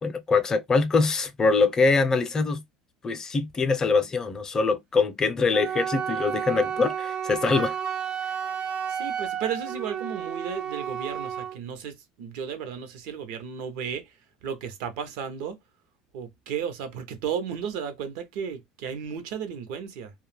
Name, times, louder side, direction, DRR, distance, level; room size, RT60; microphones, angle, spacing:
voice 1, 0.0-2.6 3.0-7.8, left 4 dB, 25° left, 0.5 m, -23 dB
Wind instrument woodwind instrument, 5.5-11.6, right 8 dB, 40° right, 0.4 m, -31 dB
voice 2, 8.9-15.6 16.1-20.1, right 7 dB, 75° right, 0.7 m, -34 dB
2.3 x 2.1 x 3.2 m
supercardioid pair, 105°, 2 cm